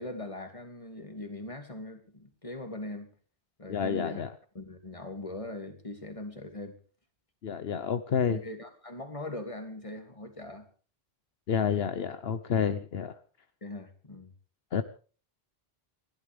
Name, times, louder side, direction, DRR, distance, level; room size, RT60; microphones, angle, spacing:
voice 1, 0.0-3.1 3.6-4.2 4.5-6.8 8.3-10.7 13.6-14.3, left 2 dB, 30° left, 2.6 m, -40 dB
voice 2, 3.7-4.3 7.4-8.4 11.5-13.1 14.7-14.8, left 7 dB, 75° left, 1.1 m, -29 dB
30.0 x 12.0 x 3.5 m
omnidirectional pair, 1.0 m